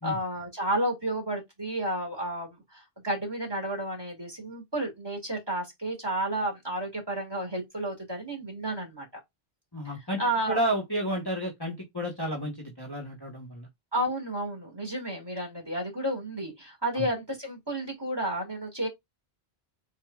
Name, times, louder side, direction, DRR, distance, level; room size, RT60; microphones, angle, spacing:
voice 1, 0.0-9.1 10.2-10.6 13.9-18.9, right 1 dB, 25° right, 2.1 m, -31 dB
voice 2, 9.7-10.2 10.5-13.7 16.9-17.0, right 1 dB, 25° left, 1.2 m, -31 dB
7.9 x 2.8 x 2.4 m
omnidirectional pair, 1.0 m